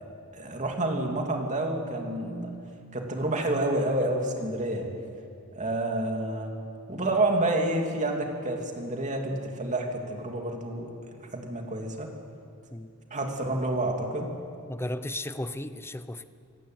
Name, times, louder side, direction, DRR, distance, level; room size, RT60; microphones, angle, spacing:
voice 1, 0.3-2.5 2.9-4.9 5.5-6.6 6.9-10.9 11.3-12.1 13.1-14.3, right 2 dB, 35° right, 2 dB, 3.0 m, -29 dB
voice 2, 14.7-16.2, left 1 dB, 10° left, 12 dB, 0.7 m, -34 dB
26.0 x 14.5 x 9.4 m, 2.4 s
head